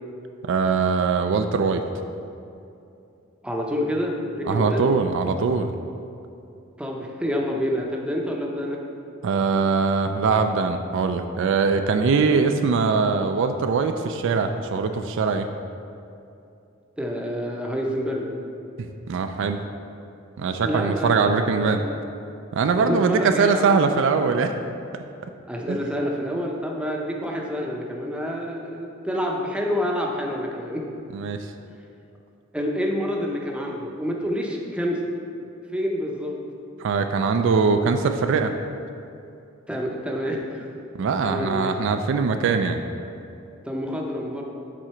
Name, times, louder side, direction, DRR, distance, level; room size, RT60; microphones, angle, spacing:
voice 1, 0.4-1.8 4.5-5.7 9.2-15.5 18.8-19.6 20.4-21.8 22.5-24.5 25.7-25.8 31.1-31.5 36.8-38.5 41.0-42.8, right 5 dB, 60° right, 7 dB, 0.3 m, -22 dB
voice 2, 3.4-4.9 6.8-8.8 17.0-18.3 20.6-22.0 22.8-23.9 25.5-30.8 32.5-35.1 35.7-36.4 39.7-40.7 41.2-41.7 43.6-44.4, equal, 5° right, -1 dB, 0.6 m, -28 dB
7.5 x 3.8 x 4.4 m, 2.7 s
head